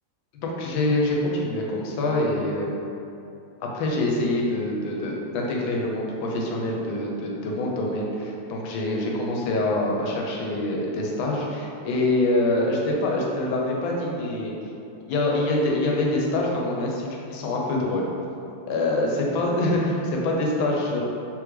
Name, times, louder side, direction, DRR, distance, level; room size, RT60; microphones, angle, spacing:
voice 1, 0.4-2.7 3.6-14.5 15.1-18.1 18.7-21.0, left 2 dB, 80° left, -2 dB, 1.4 m, -25 dB
3.6 x 3.2 x 3.2 m, 2.8 s
omnidirectional pair, 2.3 m